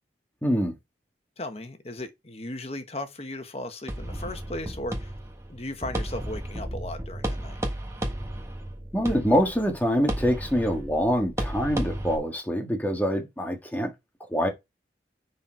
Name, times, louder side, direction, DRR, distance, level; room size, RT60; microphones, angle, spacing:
voice 1, 0.4-0.7 8.9-13.9 14.3-14.5, equal, 10° left, 1.7 m, -25 dB
voice 2, 1.4-5.2 5.5-7.6, left 1 dB, 35° left, 1.3 m, -36 dB
sound 1, 3.9-12.2, right 1 dB, 15° right, 1.5 m, -33 dB
9.9 x 4.3 x 4.5 m
head